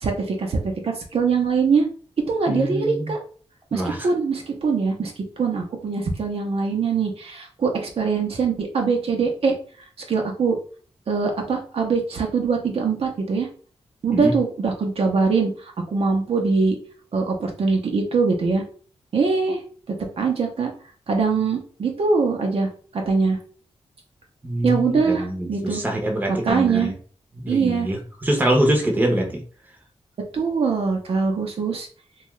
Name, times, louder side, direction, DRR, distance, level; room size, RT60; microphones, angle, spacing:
voice 1, 0.0-1.9 2.3-3.2 3.7-9.5 10.1-10.6 11.1-13.5 14.0-16.8 17.1-18.6 19.1-19.6 20.2-20.7 21.1-23.4 24.6-25.8 26.4-26.9 27.5-27.9 30.3-31.9, right 4 dB, 65° right, 2 dB, 0.6 m, -22 dB
voice 2, 2.5-3.1 3.7-4.1 14.1-14.3 24.4-26.9 27.4-29.4, right 1 dB, 15° right, 1 dB, 0.7 m, -24 dB
2.7 x 2.3 x 3.1 m, 0.42 s
wide cardioid pair, 115°, 11 cm